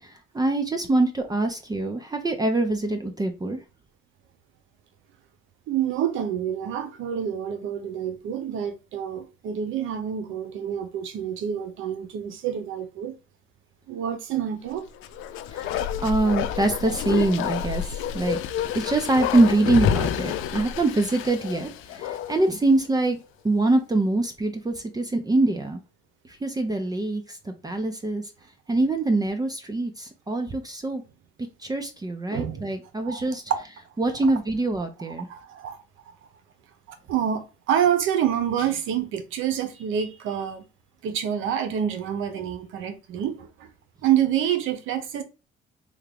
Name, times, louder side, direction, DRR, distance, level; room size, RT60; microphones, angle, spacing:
voice 1, 0.3-3.6 15.5-18.4 18.7-21.7 22.0-23.2 23.4-25.8 26.4-27.2 27.6-28.2 28.7-31.0 31.6-33.4 34.0-35.3, right 2 dB, 20° right, 0.6 m, -24 dB
voice 2, 5.7-13.1 13.9-14.8 32.3-32.7 33.0-33.2 33.5-33.6 35.3-35.8 37.1-40.6 41.0-43.7 44.0-45.2, right 9 dB, 90° right, 0.7 m, -27 dB
Bark, 14.9-22.5 22.8-22.9, left 9 dB, 90° left, 0.4 m, -29 dB
3.5 x 2.3 x 3.3 m
cardioid pair, 90°, 20 cm